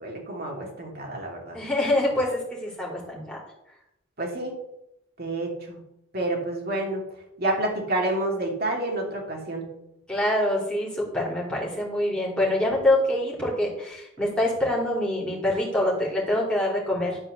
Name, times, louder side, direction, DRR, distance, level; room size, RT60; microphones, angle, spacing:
voice 1, 0.0-1.6 4.2-4.6 5.2-5.8 6.1-7.0 7.4-9.7, right 1 dB, 50° right, 0 dB, 2.8 m, -29 dB
voice 2, 1.5-3.4 10.1-17.2, left 1 dB, 5° left, -4 dB, 3.3 m, -25 dB
11.5 x 4.9 x 6.8 m, 0.85 s
head